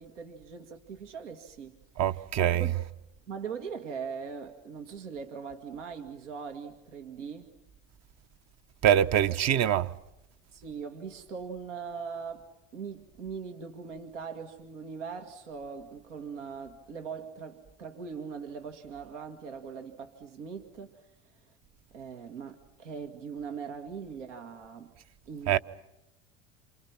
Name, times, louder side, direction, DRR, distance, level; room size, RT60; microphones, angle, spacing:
voice 1, 0.0-1.8 2.4-2.8 3.3-7.5 9.3-9.4 10.5-12.5 12.7-21.0 21.9-24.9 25.3-25.6, right 6 dB, 85° right, 2.2 m, -41 dB
voice 2, 2.0-2.7 8.8-9.9 25.5-25.6, right 10 dB, 45° right, 1.0 m, -24 dB
28.0 x 28.0 x 6.0 m
hypercardioid pair, 85°, 35 cm